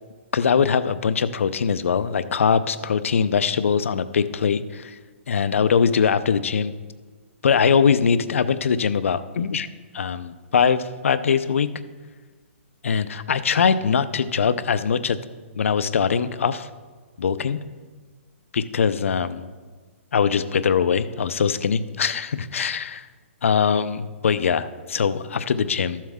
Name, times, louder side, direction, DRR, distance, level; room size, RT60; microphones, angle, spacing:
voice 1, 0.3-5.0 5.3-6.7 7.4-9.7 9.9-11.7 12.8-15.2 15.6-16.7 17.2-17.6 18.5-19.5 20.1-23.0 23.4-26.0, left 6 dB, 75° left, 13 dB, 0.6 m, -22 dB
13.0 x 7.5 x 3.6 m, 1.4 s
hypercardioid pair, 170°, 7 cm